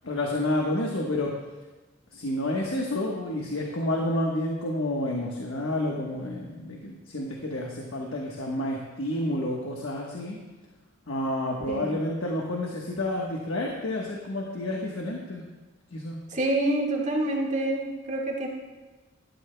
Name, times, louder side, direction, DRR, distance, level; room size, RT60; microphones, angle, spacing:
voice 1, 0.0-1.3 2.1-10.4 11.1-15.4 15.9-16.2, left 1 dB, 85° left, -1 dB, 1.3 m, -29 dB
voice 2, 11.7-12.0 16.3-18.5, right 1 dB, 35° right, -1 dB, 1.7 m, -27 dB
16.0 x 12.5 x 2.2 m, 1.2 s
head